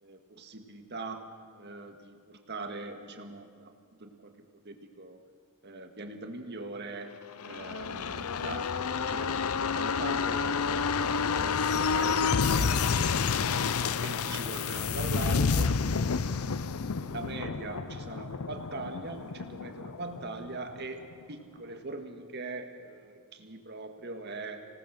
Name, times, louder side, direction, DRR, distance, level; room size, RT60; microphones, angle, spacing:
voice 1, 0.0-1.3 1.5-3.7 4.0-5.2 5.6-7.2 7.4-8.7 9.1-15.8 17.0-24.6, right 2 dB, 50° right, 5 dB, 1.8 m, -41 dB
sound 1, 7.3-20.8 21.1-21.2, left 5 dB, 80° left, 0.6 m, -29 dB
26.5 x 18.0 x 6.6 m, 2.1 s
head